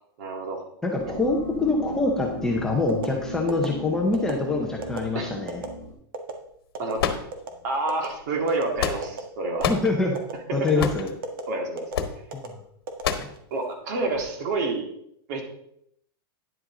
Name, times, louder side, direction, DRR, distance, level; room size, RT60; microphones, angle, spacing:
voice 1, 0.2-0.7 5.1-5.3 6.8-7.0 7.6-9.7 10.5-10.9 11.5-11.9 13.5-14.9 15.3-15.4, right 2 dB, 45° right, 2 dB, 2.1 m, -28 dB
voice 2, 0.8-5.6 9.7-10.1 10.5-11.1 12.3-12.5 13.2-13.3, left 3 dB, 5° left, -1 dB, 0.7 m, -25 dB
sound 1, 0.9-5.9, equal, 15° right, 3.5 m, -36 dB
sound 2, 2.9-3.1 3.5-3.7 4.1-4.4 4.8-5.0 5.5-5.7 6.1-6.3 6.7-6.9 7.3-7.5 7.9-8.1 8.5-8.6 9.0-9.3 9.6-9.8 10.1-10.3 10.7-10.9 11.2-11.4 11.8-12.0 12.3-12.5 12.9-13.5 13.9-14.2, right 4 dB, 65° right, 1.5 m, -33 dB
sound 3, 7.0-7.8 8.5-9.2 9.6-9.9 10.8-11.1 11.9-12.2 13.0-13.4, left 7 dB, 75° left, 1.2 m, -27 dB
10.0 x 7.6 x 3.8 m, 0.73 s
supercardioid pair, 175°, 13 cm